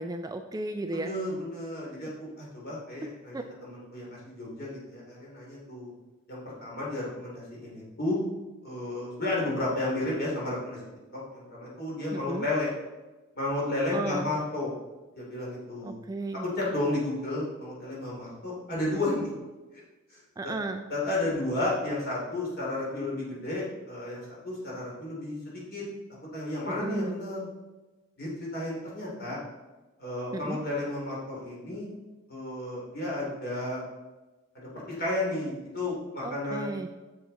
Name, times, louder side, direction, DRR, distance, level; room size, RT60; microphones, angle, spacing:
voice 1, 0.0-1.1 3.3-3.4 12.1-12.5 13.9-14.3 15.8-16.4 20.4-20.8 26.7-27.2 30.3-30.6 36.2-36.9, right 2 dB, 15° right, 6 dB, 0.3 m, -34 dB
voice 2, 0.9-5.9 6.3-8.2 8.6-10.8 11.3-12.7 13.3-14.8 15.2-15.9 16.6-19.3 19.7-19.8 20.1-20.5 20.9-25.8 26.3-27.5 28.2-29.4 30.0-31.9 32.3-33.8 34.5-36.8, left 2 dB, 45° left, -5 dB, 3.1 m, -32 dB
7.5 x 7.1 x 4.1 m, 1.2 s
head